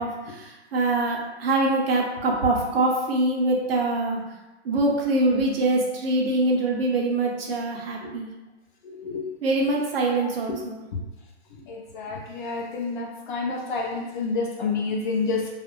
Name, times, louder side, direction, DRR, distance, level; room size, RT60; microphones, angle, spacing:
voice 1, 0.0-4.2 4.6-8.3 9.4-10.8, right 2 dB, 60° right, 0 dB, 0.7 m, -24 dB
voice 2, 8.8-9.3 10.2-10.6 11.6-15.5, left 4 dB, 45° left, -1 dB, 0.6 m, -29 dB
2.4 x 2.0 x 3.0 m, 1.1 s
hypercardioid pair, 155°, 33 cm